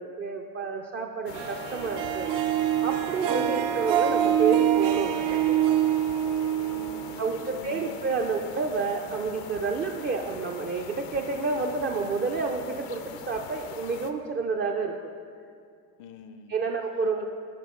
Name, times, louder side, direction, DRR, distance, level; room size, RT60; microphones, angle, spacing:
voice 1, 0.0-2.3 2.8-5.8 7.2-14.9 16.5-17.2, right 4 dB, 25° right, 1 dB, 0.4 m, -29 dB
sound 1, 1.3-14.1, left 8 dB, 85° left, 0.7 m, -43 dB
Harp, 1.3-7.6, right 11 dB, 65° right, 0.7 m, -25 dB
voice 2, 3.3-3.7 6.6-8.2 16.0-16.6, left 7 dB, 50° left, 9 dB, 0.5 m, -45 dB
14.5 x 5.1 x 3.6 m, 2.2 s
cardioid pair, 120°, 41 cm